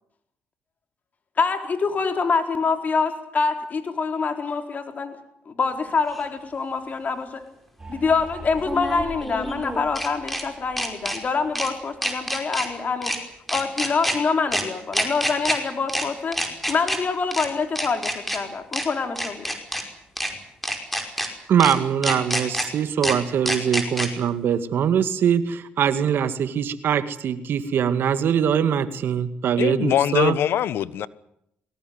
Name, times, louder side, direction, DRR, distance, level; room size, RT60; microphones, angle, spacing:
voice 1, 1.4-5.2 5.5-7.4 7.9-13.1 13.5-16.4 16.7-19.5, left 4 dB, 40° left, 6 dB, 4.1 m, -25 dB
sound 1, 6.1-6.2 8.6-10.4 10.8-11.2 11.6-11.7 12.0-12.7 13.0-13.2 13.5-14.2 14.5-14.6 14.9-15.6 15.9-16.0 16.3-17.0 17.3-17.5 17.8-18.4 18.7-18.9 19.2-19.8 20.2-20.3 20.6-21.3 21.6-21.7 22.0-22.7 23.0-23.1 23.5-24.1, equal, 5° left, 5.2 m, -26 dB
sound 2, 7.8-13.2, right 2 dB, 20° right, 5.7 m, -43 dB
voice 2, 21.5-30.4, right 8 dB, 60° right, 11 dB, 2.1 m, -22 dB
voice 3, 29.6-31.1, left 10 dB, 65° left, 18 dB, 1.1 m, -22 dB
22.0 x 18.5 x 9.5 m, 0.77 s
supercardioid pair, 75°, 4 cm